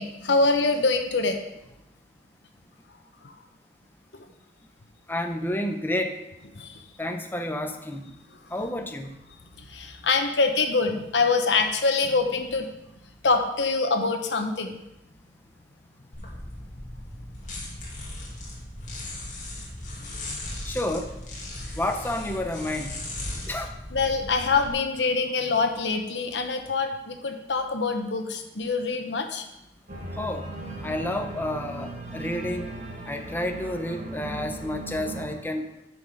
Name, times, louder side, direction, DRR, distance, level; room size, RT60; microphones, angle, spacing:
voice 1, 0.0-1.4 3.2-3.3 6.6-6.8 9.7-12.7 13.2-14.8 18.1-18.2 23.9-29.5, left 4 dB, 85° left, 5 dB, 1.0 m, -25 dB
voice 2, 5.1-6.1 7.0-8.2 8.5-9.2 20.7-21.1 21.7-23.0 23.5-23.7 30.2-30.5 30.8-32.7 33.1-35.7, left 1 dB, 10° left, 4 dB, 0.7 m, -30 dB
sound 1, 16.1-24.7, left 1 dB, 45° left, 2.4 m, -37 dB
Organ, 29.9-35.3, right 1 dB, 45° right, 1.6 m, -37 dB
9.1 x 6.2 x 4.9 m, 0.88 s
head